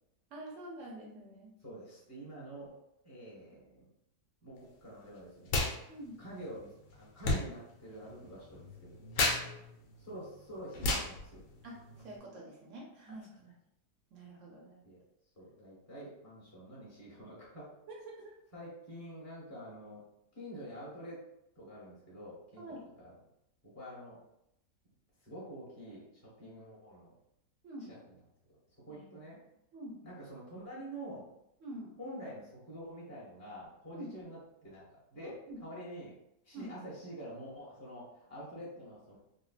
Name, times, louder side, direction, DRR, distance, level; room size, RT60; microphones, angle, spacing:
voice 1, 0.3-1.5 5.9-6.2 11.6-11.8 12.0-13.5 14.1-14.8 17.9-18.3 22.6-22.9 27.6-27.9 28.9-29.1 29.7-30.0 31.6-31.9 33.9-34.1 35.2-35.6 36.5-36.7, right 1 dB, 70° right, -1 dB, 0.7 m, -46 dB
voice 2, 1.6-2.8 3.0-3.9 4.4-5.6 6.2-6.7 7.0-9.0 10.0-11.4 13.1-13.2 14.8-15.0 15.4-17.7 18.5-20.0 20.4-21.2 21.6-23.1 23.6-24.2 25.2-27.1 27.9-28.0 28.9-29.4 30.0-31.3 32.0-34.8 35.1-36.2 36.4-39.2, equal, 15° left, -7 dB, 0.7 m, -47 dB
sound 1, 5.4-5.8 6.0-12.2, left 2 dB, 90° left, 1.3 m, -35 dB
3.5 x 2.1 x 2.4 m, 0.81 s
omnidirectional pair, 1.9 m